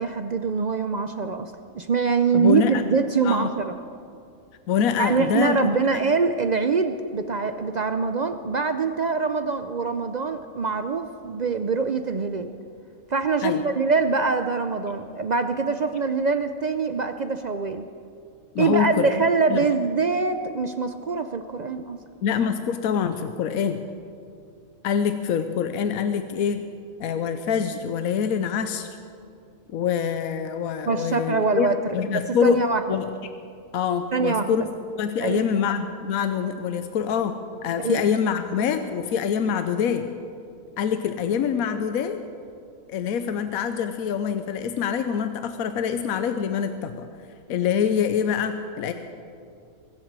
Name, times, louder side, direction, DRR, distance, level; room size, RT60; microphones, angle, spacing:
voice 1, 0.0-3.7 5.0-12.5 13.1-17.8 18.6-22.0 30.9-32.8 34.1-34.6 35.2-35.5 37.8-38.0, right 4 dB, 60° right, 8 dB, 0.4 m, -24 dB
voice 2, 2.3-2.9 3.2-3.5 4.7-5.6 5.9-6.0 13.4-13.6 18.5-19.1 19.5-19.7 22.2-23.8 24.8-26.7 27.0-28.9 29.7-32.6 32.9-33.0 33.7-34.7 34.9-40.1 40.8-42.2 42.9-47.1 47.5-48.9, left 7 dB, 85° left, 8 dB, 1.2 m, -25 dB
23.5 x 7.9 x 7.5 m, 2.4 s
omnidirectional pair, 1.5 m